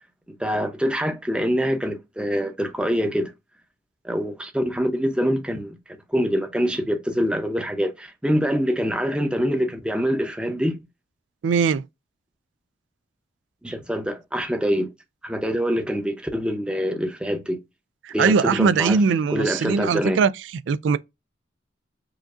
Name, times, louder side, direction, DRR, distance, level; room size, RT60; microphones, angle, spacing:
voice 1, 0.3-3.3 4.0-5.8 6.1-10.8 13.6-14.9 15.2-17.6 18.1-19.0 19.3-20.2, equal, 5° right, 0.6 m, -25 dB
voice 2, 11.4-11.9 18.0-20.3 20.7-21.0, right 5 dB, 85° right, 0.3 m, -20 dB
4.8 x 2.5 x 2.4 m
head